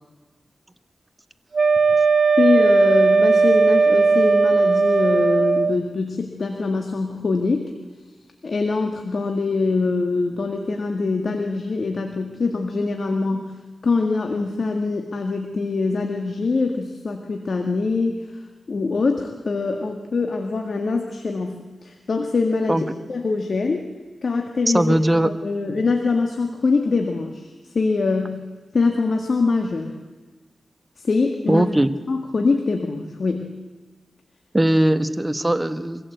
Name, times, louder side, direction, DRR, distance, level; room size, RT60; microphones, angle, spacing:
Wind instrument woodwind instrument, 1.5-5.8, right 4 dB, 65° right, 0.6 m, -17 dB
voice 1, 2.4-7.6 8.4-13.5 13.8-18.4 18.7-21.6 21.8-23.8 24.2-24.9 25.2-28.4 28.7-30.0 31.0-31.7 32.1-33.5, left 3 dB, 65° left, 3 dB, 1.9 m, -23 dB
voice 2, 24.7-25.3 31.5-31.9 34.5-36.1, right 1 dB, 20° right, 10 dB, 1.3 m, -19 dB
23.5 x 16.0 x 8.1 m, 1.3 s
cardioid pair, 55°, 0 cm